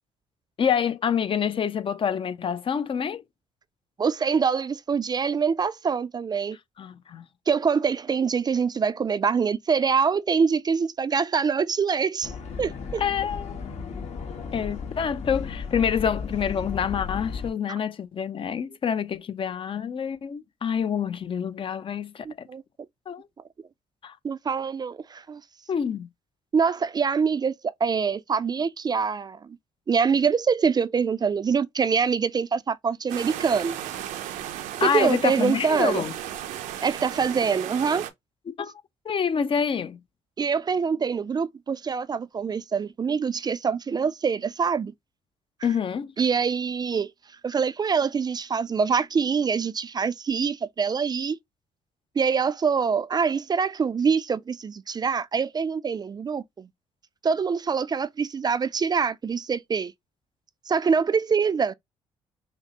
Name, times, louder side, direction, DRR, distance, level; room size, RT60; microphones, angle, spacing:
voice 1, 0.6-3.2 6.8-7.2 13.0-13.6 14.5-22.5 23.1-23.3 24.0-24.2 25.7-26.1 34.8-36.1 38.5-38.7 39.0-40.0 45.6-46.1, left 7 dB, 45° left, 0.5 m, -27 dB
voice 2, 4.0-6.6 7.5-12.3 12.6-13.0 22.2-22.6 24.2-25.4 26.5-27.5 27.8-29.4 29.9-33.8 34.8-36.0 36.8-38.1 40.4-44.9 46.2-47.1 47.4-51.4 52.2-56.7 57.2-59.9 60.7-61.7, right 6 dB, 30° right, 0.4 m, -24 dB
sound 1, 12.2-17.5, left 5 dB, 60° left, 1.4 m, -34 dB
sound 2, 33.1-38.1, right 11 dB, 85° right, 0.7 m, -35 dB
5.7 x 2.0 x 2.9 m
supercardioid pair, 75°, 13 cm